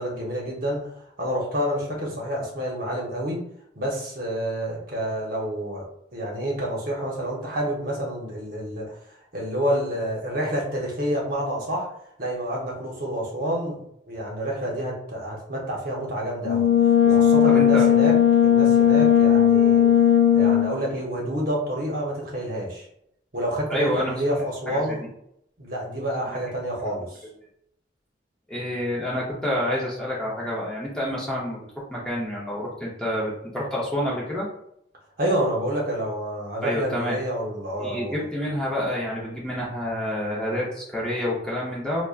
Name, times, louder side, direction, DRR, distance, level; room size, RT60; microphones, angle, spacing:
voice 1, 0.0-3.4 3.7-5.8 6.1-8.9 9.3-11.9 12.2-13.8 14.1-16.6 17.0-18.2 18.4-19.8 20.3-22.8 23.3-25.0 25.6-27.2 35.2-38.2, equal, 50° right, -3 dB, 1.0 m, -28 dB
Brass instrument, 16.4-20.8, left 9 dB, 60° left, 0.3 m, -17 dB
voice 2, 17.5-17.9 23.7-24.1 24.7-25.0 28.5-34.5 36.6-37.2 37.8-42.0, left 1 dB, 5° left, -5 dB, 0.8 m, -28 dB
5.1 x 2.3 x 2.5 m, 0.73 s
head